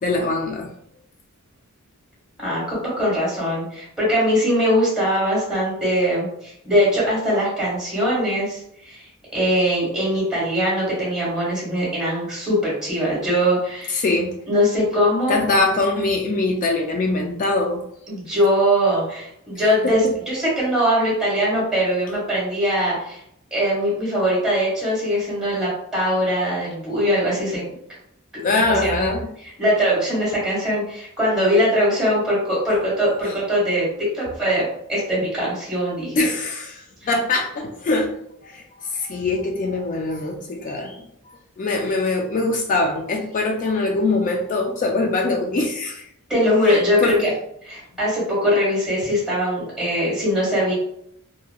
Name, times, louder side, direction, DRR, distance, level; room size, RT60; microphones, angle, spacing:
voice 1, 0.0-0.7 13.9-14.3 15.3-17.8 19.8-20.1 28.4-29.3 36.1-38.1 38.4-38.6 38.9-41.0 41.6-46.0 47.0-47.3, left 2 dB, 35° left, 2 dB, 0.3 m, -22 dB
voice 2, 2.4-9.1 9.3-14.0 14.5-15.4 18.1-23.2 23.5-27.6 28.5-29.1 29.6-36.3 46.3-47.3 47.6-50.7, equal, 5° right, -6 dB, 1.3 m, -21 dB
2.9 x 2.5 x 2.3 m, 0.73 s
head